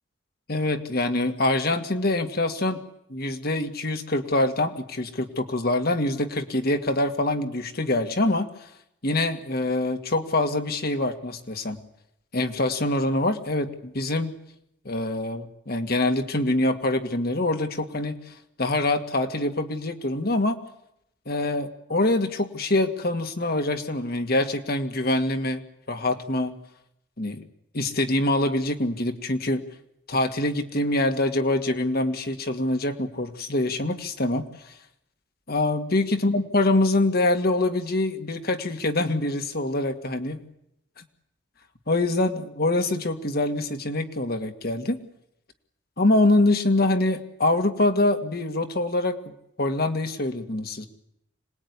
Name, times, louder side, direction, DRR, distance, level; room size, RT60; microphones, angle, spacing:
voice 1, 0.5-2.8 3.1-8.5 9.0-11.8 12.3-14.4 14.9-18.2 18.6-20.6 21.3-26.5 27.2-27.5 27.7-29.6 30.1-34.7 35.5-40.4 41.9-45.0 46.0-49.3 49.6-50.9, left 2 dB, 55° left, 7 dB, 2.2 m, -25 dB
26.0 x 20.0 x 9.8 m, 0.79 s
head